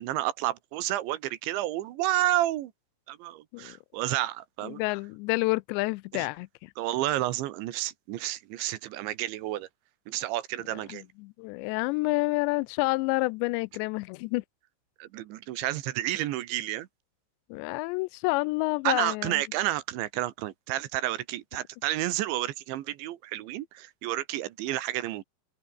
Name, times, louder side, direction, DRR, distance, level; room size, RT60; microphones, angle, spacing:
voice 1, 0.0-2.7 3.1-4.8 6.1-6.3 6.8-9.7 10.1-11.0 15.0-16.9 18.9-25.2, right 15 dB, 85° right, 3.7 m, -30 dB
voice 2, 4.6-6.7 10.9-14.4 17.5-19.4, left 25 dB, 85° left, 2.7 m, -29 dB
open air
omnidirectional pair, 5.1 m